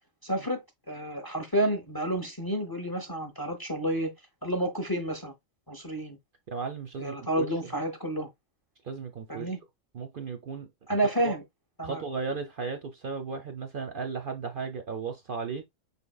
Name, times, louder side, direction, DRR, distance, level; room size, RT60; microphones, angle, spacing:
voice 1, 0.2-4.1 4.4-5.3 5.7-6.2 7.0-8.3 9.3-9.6 10.9-11.4 11.8-12.0, right 1 dB, 20° left, 0.7 m, -30 dB
voice 2, 6.5-7.5 8.8-9.5 9.9-10.7 11.2-11.3 11.8-15.6, right 5 dB, 55° right, 0.7 m, -35 dB
5.7 x 3.6 x 2.3 m
omnidirectional pair, 1.3 m